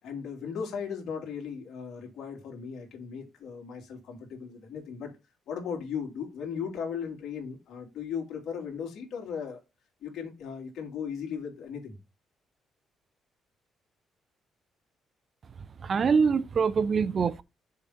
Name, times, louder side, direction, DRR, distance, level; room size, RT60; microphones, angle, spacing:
voice 1, 0.0-5.1 5.5-9.6 10.0-12.0, left 7 dB, 75° left, 2.9 m, -37 dB
voice 2, 15.8-17.4, right 5 dB, 45° right, 0.6 m, -24 dB
6.6 x 3.8 x 5.8 m
cardioid pair, 90°, 0 cm